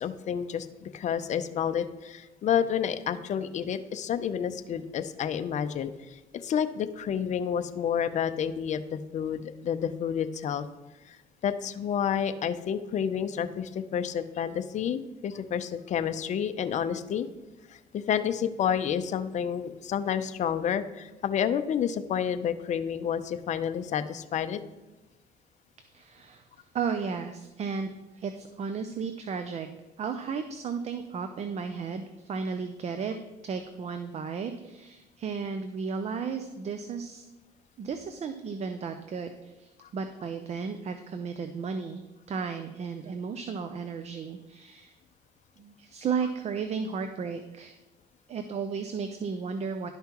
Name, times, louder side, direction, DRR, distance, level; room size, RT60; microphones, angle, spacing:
voice 1, 0.0-10.6 11.1-11.2 11.4-17.3 17.7-24.6, left 8 dB, 45° left, 10 dB, 0.5 m, -30 dB
voice 2, 25.9-29.7 30.0-33.1 33.4-37.2 37.8-42.0 42.3-45.0 45.6-47.8 48.3-49.9, right 5 dB, 40° right, 8 dB, 0.5 m, -34 dB
11.5 x 5.6 x 3.0 m, 1.1 s
cardioid pair, 110°, 17 cm